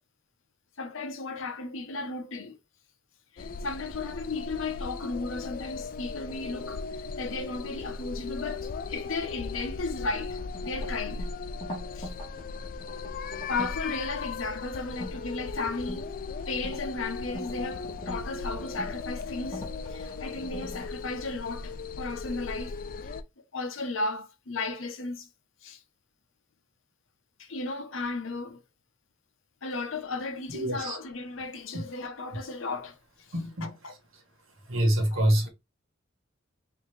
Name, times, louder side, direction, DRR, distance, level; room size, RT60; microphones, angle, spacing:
voice 1, 0.8-2.6 3.3-11.3 11.9-12.1 13.5-16.1 16.5-23.2 23.5-25.3 25.6-25.8 27.4-28.6 29.6-33.3 33.6-33.9 35.1-35.2, left 3 dB, 75° left, 0.9 m, -35 dB
sound 1, 3.4-23.2, left 4 dB, 45° left, 0.3 m, -37 dB
sound 2, 10.3-13.8 14.9-15.2 15.7-20.9, left 1 dB, 25° left, 1.8 m, -43 dB
voice 2, 30.5-31.0 31.7-31.8 33.3-33.7 34.7-35.5, right 1 dB, 75° right, 1.4 m, -26 dB
4.0 x 2.7 x 3.3 m
head